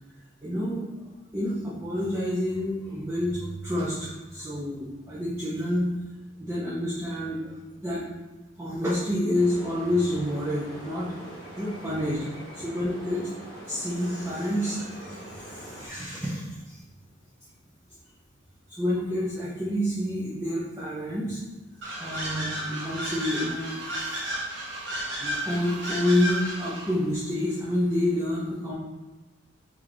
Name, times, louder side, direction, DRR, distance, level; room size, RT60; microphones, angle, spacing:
voice 1, 0.4-0.9 1.3-5.9 6.4-8.0 8.6-11.1 11.6-12.2 12.5-13.3 13.6-16.8 18.8-21.4 22.0-24.2 25.2-28.7, left 1 dB, 15° right, -8 dB, 0.5 m, -28 dB
sound 1, 9.3-15.9, right 1 dB, 85° right, 1.1 m, -43 dB
sound 2, 21.8-27.0, equal, 60° right, 0.8 m, -33 dB
3.6 x 3.3 x 3.2 m, 1.2 s
head